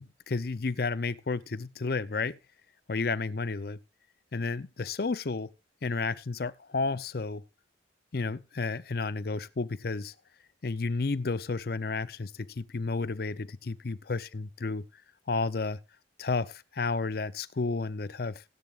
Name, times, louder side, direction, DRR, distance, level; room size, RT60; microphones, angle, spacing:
voice 1, 0.0-2.4 2.9-3.8 4.3-5.5 5.8-7.4 8.1-10.1 10.6-14.9 15.3-15.8 16.2-18.4, left 4 dB, 55° left, 0.6 m, -32 dB
16.5 x 10.5 x 2.4 m
head